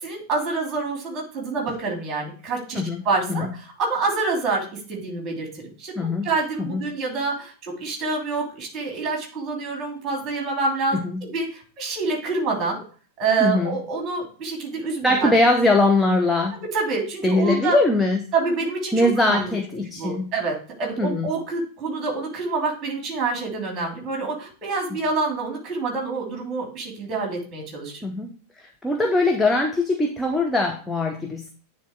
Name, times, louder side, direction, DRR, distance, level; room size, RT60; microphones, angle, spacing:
voice 1, 0.0-2.8 3.0-5.9 6.2-12.8 13.2-15.3 16.5-17.8 18.3-19.5 19.9-28.0, right 3 dB, 25° right, 0 dB, 2.8 m, -27 dB
voice 2, 6.0-6.3 6.6-6.8 10.9-11.3 13.4-13.8 15.0-16.6 17.2-18.2 18.9-20.3 21.0-21.3 28.0-28.3 28.6-31.5, left 2 dB, 5° left, 2 dB, 0.8 m, -21 dB
9.4 x 3.4 x 4.5 m, 0.39 s
figure-of-eight pair, 90°, 0 cm